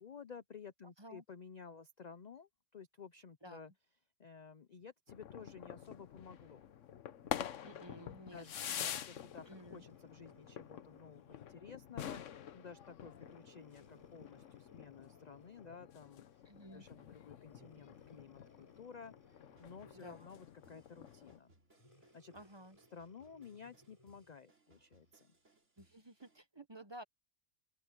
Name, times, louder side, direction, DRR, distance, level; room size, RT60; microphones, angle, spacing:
voice 1, 0.0-3.7 4.2-6.7 7.2-16.4 16.7-21.5 22.1-22.3 22.9-25.3, left 6 dB, 45° left, 0.5 m, -54 dB
voice 2, 0.8-1.2 3.4-3.6 7.6-8.9 9.5-9.8 16.4-16.8 20.0-20.3 22.3-22.8 25.8-27.0, right 1 dB, 20° right, 1.0 m, -53 dB
sound 1, 5.1-21.4, left 9 dB, 65° left, 1.2 m, -47 dB
Breathing, 8.9-11.5 12.1-12.3 13.2-16.1 17.5-20.3 21.7-24.5 25.1-25.2, left 1 dB, 25° left, 6.2 m, -67 dB
sound 2, 19.6-26.4, right 2 dB, 60° right, 3.8 m, -71 dB
open air
omnidirectional pair, 1.4 m